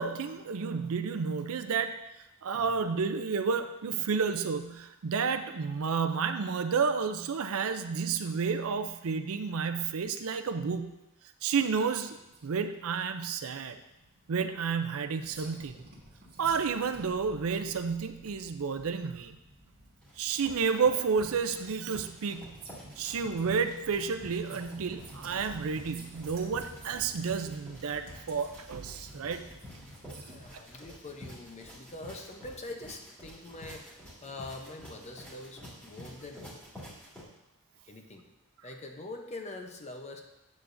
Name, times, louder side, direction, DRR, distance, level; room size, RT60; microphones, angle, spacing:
voice 1, 0.0-1.9 2.4-11.0 11.4-12.2 12.4-13.8 14.3-15.8 16.4-19.4 20.2-22.6 23.0-29.5, right 5 dB, 70° right, 9 dB, 0.5 m, -31 dB
sound 1, 11.7-30.4, right 2 dB, 45° right, 1.5 m, -52 dB
sound 2, 20.0-37.2, equal, 5° left, 2.1 m, -50 dB
voice 2, 30.3-33.9 34.2-36.4 37.9-38.3 38.6-40.2, left 2 dB, 30° left, 4 dB, 0.7 m, -44 dB
8.4 x 7.0 x 2.6 m, 0.93 s
head